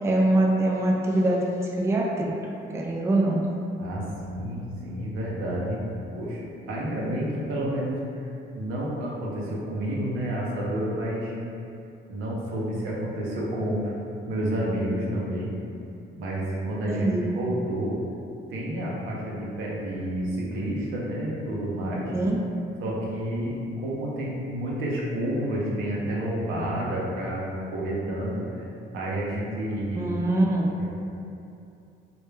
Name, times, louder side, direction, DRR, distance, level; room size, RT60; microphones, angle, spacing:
voice 1, 0.0-2.3 2.7-3.4 16.9-17.3 22.1-22.4 30.0-30.7, right 1 dB, 15° right, -2 dB, 0.3 m, -23 dB
voice 2, 3.8-5.9 6.1-8.0 8.6-11.4 12.1-13.9 14.2-15.5 16.1-17.1 17.3-18.0 18.5-22.1 22.8-23.5 23.8-28.6 28.9-30.1, right 1 dB, 90° right, -5 dB, 0.6 m, -30 dB
2.2 x 2.1 x 3.2 m, 2.7 s
cardioid pair, 90°, 20 cm